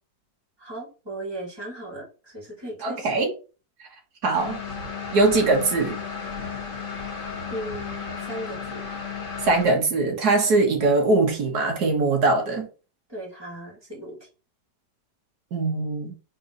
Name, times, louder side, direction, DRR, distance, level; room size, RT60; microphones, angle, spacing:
voice 1, 0.6-3.1 7.5-8.8 10.4-10.5 13.1-14.2, right 1 dB, 15° right, 2.8 m, -37 dB
voice 2, 2.8-3.3 4.2-4.6 5.1-6.0 9.4-12.7 15.5-16.2, right 3 dB, 65° right, 2.0 m, -21 dB
sound 1, 4.3-9.7, left 5 dB, 30° left, 1.5 m, -34 dB
4.3 x 4.2 x 5.3 m
omnidirectional pair, 1.8 m